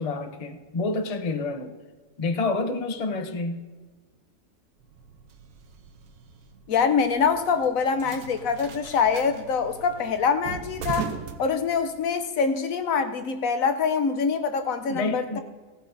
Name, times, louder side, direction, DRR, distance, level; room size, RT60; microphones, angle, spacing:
voice 1, 0.0-1.7 2.2-3.6 14.9-15.4, left 3 dB, 40° left, 6 dB, 0.5 m, -28 dB
sound 1, 4.8-12.1, right 7 dB, 70° right, 1.2 m, -40 dB
voice 2, 6.7-15.4, left 5 dB, 65° left, 9 dB, 1.0 m, -25 dB
16.5 x 13.0 x 2.6 m, 1.3 s
omnidirectional pair, 1.7 m